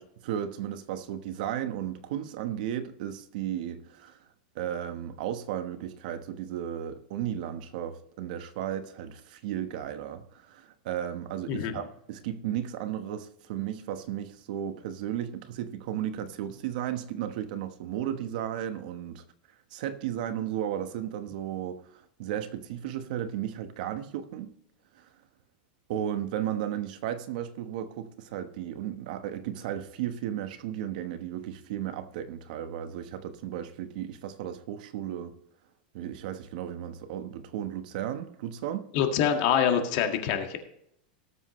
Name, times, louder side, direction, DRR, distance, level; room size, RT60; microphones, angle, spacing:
voice 1, 0.0-4.2 4.5-19.2 19.7-24.5 24.9-25.1 25.9-35.3 35.9-38.9, right 10 dB, 60° right, 1.2 m, -34 dB
voice 2, 38.9-40.6, left 8 dB, 50° left, 1.9 m, -25 dB
18.5 x 7.6 x 3.1 m
supercardioid pair, 155°, 5 cm